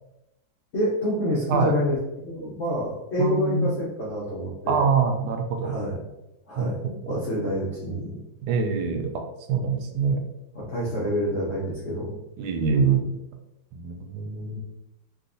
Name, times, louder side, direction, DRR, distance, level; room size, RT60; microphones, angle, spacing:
voice 1, 0.7-2.0 2.2-4.8 5.6-6.1 6.5-8.2 9.7-9.8 10.5-12.2 12.8-12.9, equal, 85° left, -6 dB, 0.6 m, -28 dB
voice 2, 3.2-3.7 4.7-5.8 6.6-7.2 8.4-9.2 9.5-10.2 12.4-13.1 13.7-14.6, right 5 dB, 90° right, 5 dB, 1.4 m, -24 dB
3.8 x 2.4 x 2.5 m, 0.91 s
omnidirectional pair, 2.2 m